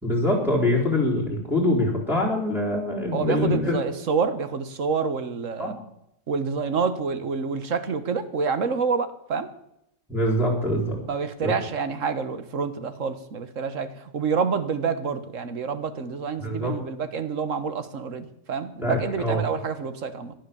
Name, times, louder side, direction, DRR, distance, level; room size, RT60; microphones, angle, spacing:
voice 1, 0.0-3.7 5.6-5.7 10.1-11.0 11.4-11.5 16.4-16.7 18.8-19.4, left 1 dB, ahead, -4 dB, 4.0 m, -24 dB
voice 2, 3.1-5.8 6.3-9.5 11.1-13.9 14.1-20.3, right 5 dB, 80° right, 11 dB, 1.7 m, -27 dB
18.0 x 11.0 x 7.0 m, 0.80 s
omnidirectional pair, 1.3 m